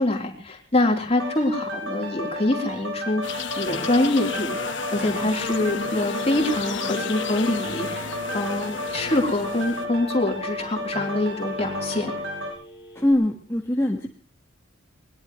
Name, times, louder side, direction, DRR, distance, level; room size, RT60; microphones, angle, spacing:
voice 1, 0.0-12.1, left 1 dB, 30° left, 1 dB, 3.8 m, -25 dB
sound 1, 1.1-12.5, left 1 dB, 75° right, 6.9 m, -32 dB
sound 2, 3.2-9.8, left 5 dB, 65° left, 1.4 m, -33 dB
Telephone, 5.1-13.1, equal, 10° right, 6.7 m, -46 dB
voice 2, 12.9-14.1, left 1 dB, 15° left, 0 dB, 1.6 m, -22 dB
21.5 x 20.5 x 3.2 m, 0.36 s
head